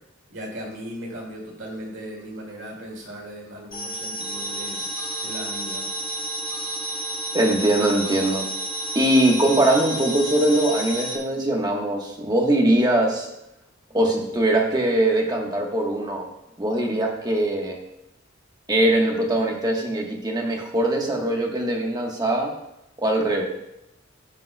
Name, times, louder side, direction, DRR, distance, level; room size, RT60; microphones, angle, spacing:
voice 1, 0.3-4.8 5.2-5.9, equal, 65° right, -2 dB, 2.3 m, -37 dB
sound 1, 3.7-11.2, right 1 dB, 45° left, 1.4 m, -31 dB
voice 2, 7.3-8.5 8.9-13.3 13.9-16.3 16.6-17.8 18.7-22.5 23.0-23.4, right 1 dB, 20° right, 0 dB, 1.2 m, -21 dB
15.5 x 5.3 x 2.2 m, 0.88 s
head